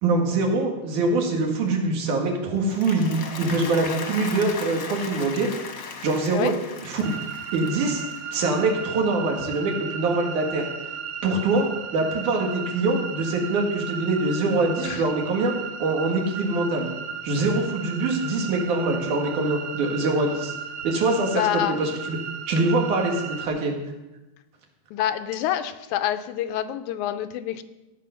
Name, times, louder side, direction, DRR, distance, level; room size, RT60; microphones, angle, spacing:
voice 1, 0.0-5.5 6.0-6.5 6.8-7.1 7.5-8.0 8.3-10.7 11.2-11.7 11.9-15.5 15.8-16.9 17.2-20.5 20.8-22.2 22.5-23.7, right 3 dB, 80° right, 1 dB, 3.3 m, -24 dB
Applause, 2.5-8.9, left 5 dB, 50° left, 1.3 m, -37 dB
sound 1, 7.0-23.5, right 7 dB, 65° right, 1.4 m, -35 dB
voice 2, 21.2-21.8 24.9-27.6, left 11 dB, 85° left, 10 dB, 2.0 m, -27 dB
17.0 x 6.8 x 5.6 m, 1.0 s
omnidirectional pair, 3.5 m